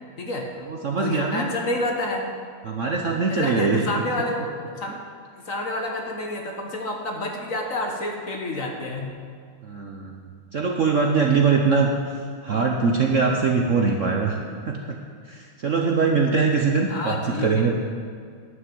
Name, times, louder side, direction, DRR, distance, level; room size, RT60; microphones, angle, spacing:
voice 1, 0.2-0.5 1.0-2.3 3.3-4.4 4.6-5.0 5.4-9.1 16.9-17.7, left 2 dB, 45° left, 1 dB, 1.4 m, -29 dB
voice 2, 0.7-1.5 2.6-3.8 9.6-11.9 12.1-14.4 14.7-15.0 15.2-17.7, right 5 dB, 55° right, 1 dB, 0.9 m, -22 dB
11.5 x 6.5 x 9.1 m, 2.1 s
omnidirectional pair, 2.2 m